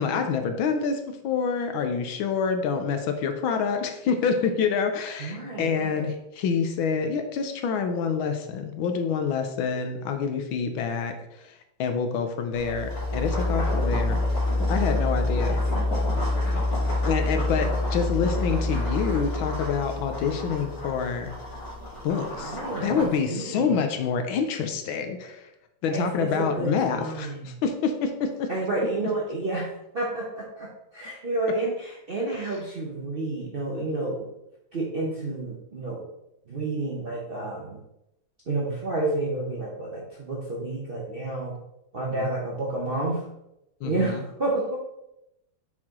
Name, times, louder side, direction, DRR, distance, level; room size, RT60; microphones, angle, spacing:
voice 1, 0.0-14.2 14.7-15.6 17.1-21.3 22.0-25.5 25.8-28.5 42.1-42.3 43.8-44.2, left 6 dB, 80° left, 6 dB, 1.5 m, -27 dB
voice 2, 5.2-6.2 15.5-16.7 22.4-23.0 23.3-23.7 25.9-27.5 28.5-29.7 29.9-34.3 34.7-36.0 36.5-37.8 38.5-41.6 41.9-43.3 43.8-44.8, right 2 dB, 45° right, -5 dB, 0.7 m, -30 dB
sound 1, 12.5-23.2, left 2 dB, 45° left, 2.4 m, -27 dB
6.0 x 4.5 x 3.6 m, 0.86 s
omnidirectional pair, 2.2 m